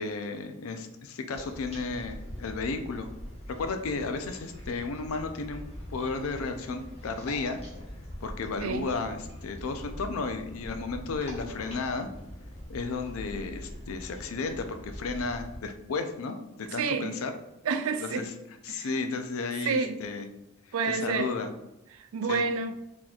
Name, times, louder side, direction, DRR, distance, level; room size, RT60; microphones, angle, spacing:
voice 1, 0.0-3.1 3.5-5.6 5.9-7.6 8.2-12.1 12.7-17.3 18.1-18.2 18.7-20.2 20.9-21.5 22.3-22.4, left 4 dB, 80° left, 7 dB, 0.4 m, -33 dB
sound 1, 1.3-15.6, equal, 30° left, 0.8 m, -43 dB
voice 2, 16.7-17.2 17.6-18.3 18.7-18.9 19.6-20.0 20.7-21.3 21.9-22.7, right 5 dB, 80° right, 6 dB, 0.4 m, -29 dB
4.1 x 2.8 x 2.4 m, 0.88 s
head